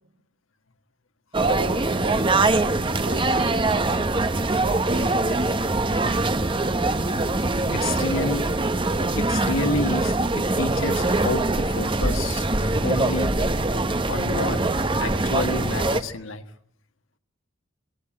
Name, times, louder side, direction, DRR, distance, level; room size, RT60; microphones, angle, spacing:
sound 1, 1.3-16.0, right 2 dB, 25° right, 1.1 m, -23 dB
voice 1, 1.4-2.5 2.8-3.9 4.5-5.7, right 3 dB, 75° right, 3 dB, 4.4 m, -35 dB
voice 2, 7.7-8.4 9.2-12.4 12.8-13.3 14.1-14.6 15.0-16.4, left 2 dB, 85° left, 8 dB, 1.6 m, -29 dB
26.5 x 18.5 x 8.8 m, 0.73 s
head